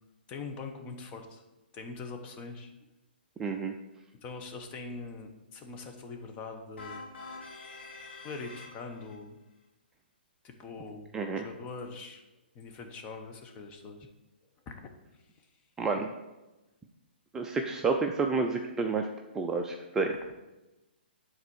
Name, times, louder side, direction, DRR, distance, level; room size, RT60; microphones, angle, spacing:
voice 1, 0.3-1.4 1.7-2.7 4.2-7.0 8.2-9.4 10.4-12.2 12.5-14.1 14.7-14.8, left 4 dB, 25° left, 4 dB, 1.0 m, -42 dB
voice 2, 3.4-3.7 11.1-11.5 15.8-16.1 17.3-19.1 19.3-20.1, right 4 dB, 10° right, 3 dB, 0.4 m, -29 dB
sound 1, 6.8-9.2, left 3 dB, 85° left, 3.5 m, -46 dB
9.7 x 4.1 x 6.3 m, 1.1 s
hypercardioid pair, 150°, 6 cm